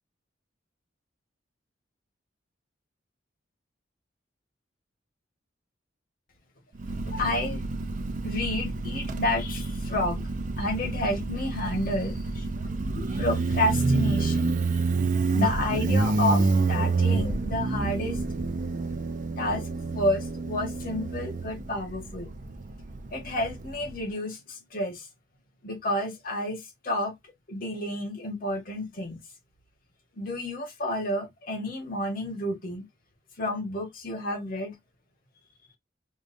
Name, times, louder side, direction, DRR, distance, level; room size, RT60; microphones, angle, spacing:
voice 1, 6.8-7.6 8.2-10.2 10.6-18.2 19.4-19.7 19.9-22.3 23.1-25.1 25.6-29.2 30.2-32.9 33.4-34.8, left 1 dB, 50° left, 1.5 m, -30 dB
Motorcycle, 6.8-24.0, right 3 dB, 45° right, 0.6 m, -28 dB
6.3 x 2.3 x 2.6 m
head